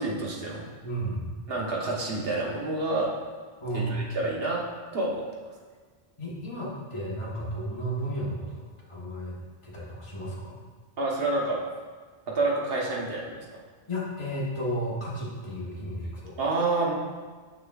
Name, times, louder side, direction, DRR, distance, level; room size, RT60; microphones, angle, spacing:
voice 1, 0.0-0.7 1.5-3.1 3.9-4.6 4.9-5.2 11.0-11.6 12.3-13.4 16.4-16.9, right 2 dB, 70° right, -3 dB, 1.3 m, -28 dB
voice 2, 0.8-1.3 3.6-4.0 6.2-9.4 9.6-10.6 13.9-16.3, right 1 dB, 30° left, -6 dB, 1.3 m, -33 dB
6.6 x 6.5 x 2.4 m, 1.5 s
omnidirectional pair, 1.0 m